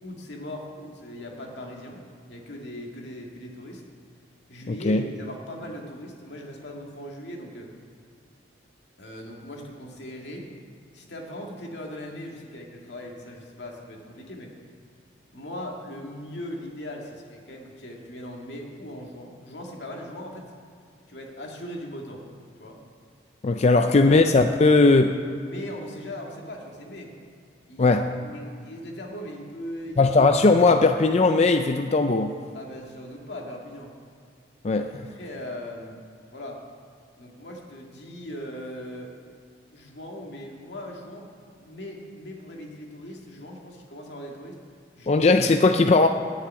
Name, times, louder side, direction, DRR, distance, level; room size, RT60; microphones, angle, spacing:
voice 1, 0.0-2.0 2.3-3.8 4.5-7.7 9.0-10.5 10.9-14.5 15.3-20.4 21.1-22.2 22.6-22.8 25.4-27.1 27.7-30.1 32.5-33.9 35.1-36.0 36.3-36.6 37.2-39.1 39.7-44.5 45.0-45.3, left 1 dB, 80° left, 0 dB, 2.1 m, -39 dB
voice 2, 4.7-5.0 23.4-25.1 27.8-28.0 30.0-32.3 34.6-35.1 45.1-46.1, left 3 dB, 40° left, 7 dB, 0.4 m, -18 dB
11.5 x 6.9 x 9.2 m, 2.2 s
head